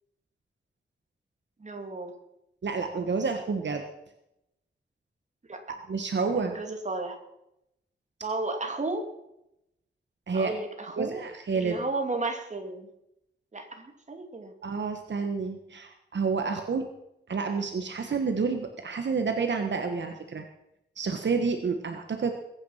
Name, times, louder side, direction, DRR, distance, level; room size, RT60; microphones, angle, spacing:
voice 1, 1.6-2.1 5.5-5.6 6.4-7.2 8.2-9.1 10.3-11.3 11.5-12.9 13.5-14.5, right 2 dB, 40° right, 4 dB, 2.6 m, -33 dB
voice 2, 2.6-3.8 5.9-6.6 10.3-10.5 11.0-11.8 14.6-16.9 17.3-20.4 20.9-22.3, right 5 dB, 70° right, 5 dB, 1.5 m, -29 dB
21.5 x 9.7 x 5.8 m, 0.83 s
wide cardioid pair, 130°, 19 cm